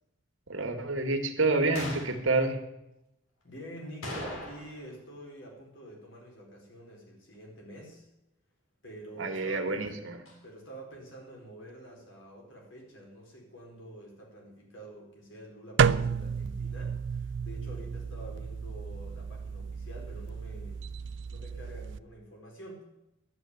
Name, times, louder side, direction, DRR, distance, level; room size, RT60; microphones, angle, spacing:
voice 1, 0.5-2.6 9.2-10.2, right 3 dB, 80° right, 6 dB, 1.9 m, -28 dB
sound 1, 1.8-2.2 4.0-4.9 5.1-5.2 10.3-10.4, left 1 dB, 90° left, 3.4 m, -39 dB
voice 2, 3.4-8.1 8.8-9.9 10.4-20.8 21.3-22.8, right 1 dB, 70° left, 0 dB, 4.7 m, -47 dB
sound 2, 15.8-22.0, right 6 dB, 65° right, 0.4 m, -31 dB
11.0 x 8.5 x 9.4 m, 0.88 s
head